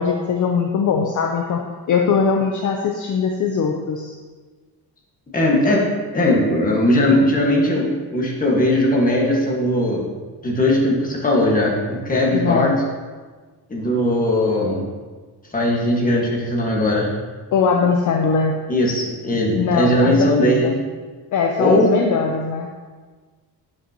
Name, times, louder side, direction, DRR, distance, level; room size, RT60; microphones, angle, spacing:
voice 1, 0.0-1.6 1.9-4.1 12.3-12.8 17.5-18.6 19.5-20.8 21.3-22.7, left 5 dB, 50° left, 1 dB, 0.6 m, -20 dB
voice 2, 5.3-5.8 6.1-10.1 10.4-12.7 13.7-14.9 15.5-17.1 18.7-20.8 21.6-21.9, left 1 dB, 20° left, -3 dB, 1.5 m, -19 dB
11.5 x 5.6 x 2.9 m, 1.4 s
cardioid pair, 165°, 41 cm